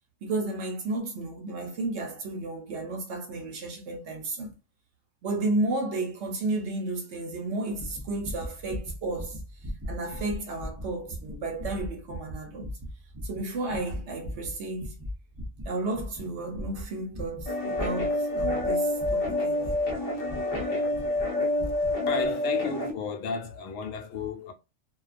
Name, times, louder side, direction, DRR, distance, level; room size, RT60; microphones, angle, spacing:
voice 1, 0.2-4.5 5.2-9.4 9.9-12.7 13.2-15.0 15.6-19.8, right 2 dB, 65° right, 0.8 m, -32 dB
sound 1, 7.7-20.6 20.9-21.3 21.5-22.0 22.2-22.3, equal, 30° right, 0.4 m, -38 dB
sound 2, 17.5-22.9, left 1 dB, 55° left, 0.7 m, -28 dB
voice 2, 22.1-24.5, left 5 dB, 75° left, 1.0 m, -33 dB
2.3 x 2.2 x 2.4 m
omnidirectional pair, 1.4 m